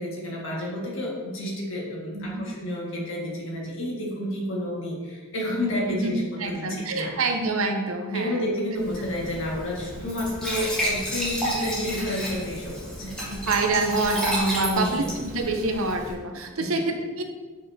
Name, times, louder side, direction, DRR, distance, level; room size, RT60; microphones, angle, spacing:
voice 1, 0.0-7.4 8.1-13.2 14.6-15.1 16.6-16.8, left 1 dB, 60° left, -4 dB, 1.9 m, -30 dB
voice 2, 2.1-2.4 5.9-6.1 6.4-8.4 11.6-11.7 13.0-17.2, right 3 dB, 75° right, 5 dB, 0.8 m, -27 dB
Glass / Trickle dribble / Fill (with liquid), 8.8-16.1, right 1 dB, 5° left, 1.9 m, -31 dB
8.4 x 5.4 x 2.8 m, 1.4 s
head